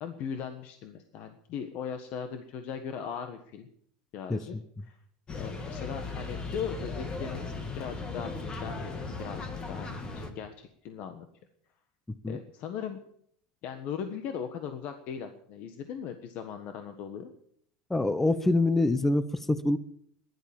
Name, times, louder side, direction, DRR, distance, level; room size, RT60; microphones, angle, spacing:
voice 1, 0.0-3.7 4.1-4.6 4.8-5.0 5.4-8.9 9.2-11.3 12.3-13.0 13.6-17.3, left 7 dB, 50° left, 7 dB, 1.5 m, -38 dB
voice 2, 4.3-4.6 12.2-12.4 17.9-19.8, left 2 dB, 10° left, 14 dB, 0.7 m, -25 dB
sound 1, 5.3-10.3, left 3 dB, 25° left, 2.2 m, -37 dB
15.5 x 11.5 x 7.4 m, 0.66 s
supercardioid pair, 135°, 4 cm